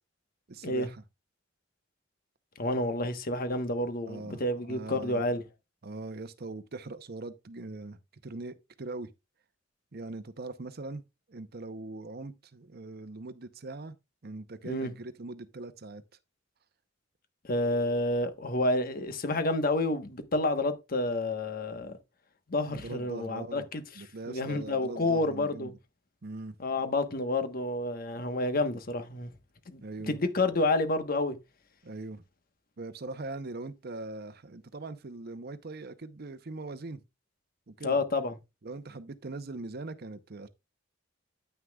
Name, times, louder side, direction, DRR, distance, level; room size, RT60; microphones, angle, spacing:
voice 1, 0.5-1.0 4.1-4.4 4.7-5.2 5.8-9.1 9.9-11.0 11.3-13.9 14.2-16.0 22.7-23.7 24.0-25.7 26.2-26.6 29.8-30.2 31.8-32.2 32.8-37.0 37.7-38.0 38.6-40.5, right 2 dB, 55° right, 0.7 m, -41 dB
voice 2, 2.6-5.4 14.6-14.9 17.4-22.0 22.5-23.8 24.3-25.7 26.6-29.3 29.7-29.8 30.1-31.4 37.8-38.4, left 2 dB, 50° left, 1.2 m, -29 dB
9.5 x 9.3 x 2.3 m
head